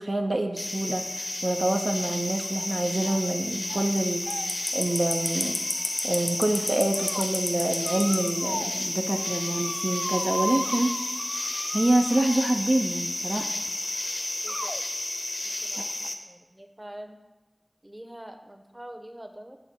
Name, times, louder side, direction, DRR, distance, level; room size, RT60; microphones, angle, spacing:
voice 1, 0.0-5.6 6.0-11.0 11.7-13.5 15.8-15.9, right 2 dB, 70° right, 4 dB, 0.4 m, -26 dB
sound 1, 0.6-16.1, left 2 dB, 80° left, 0.7 m, -31 dB
sound 2, 2.4-2.7 3.0-3.4 3.6-3.9 4.2-6.2 6.7-7.2 7.8-8.8 9.1-12.7 13.7-13.8 14.5-14.8, equal, ahead, 0.4 m, -37 dB
voice 2, 14.4-14.7 15.6-17.2 17.8-19.6, right 1 dB, 25° right, 6 dB, 0.8 m, -44 dB
9.0 x 3.5 x 6.0 m, 1.2 s
wide cardioid pair, 40°, 0 cm